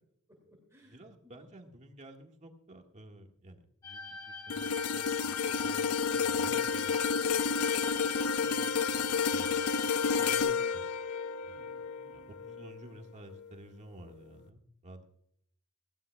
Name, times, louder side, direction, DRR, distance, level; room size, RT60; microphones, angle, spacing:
voice 1, 0.3-1.4 8.4-9.1 11.5-12.3, equal, 15° right, 0 dB, 2.4 m, -60 dB
voice 2, 0.8-7.9 9.3-10.8 11.4-11.7 12.1-15.0, right 1 dB, 35° right, 3 dB, 1.7 m, -52 dB
sound 1, 3.8-10.4, left 3 dB, 15° left, 2.4 m, -43 dB
sound 2, 4.5-12.8 13.3-13.5, left 6 dB, 80° left, 0.6 m, -31 dB
18.0 x 16.0 x 2.3 m, 0.69 s
head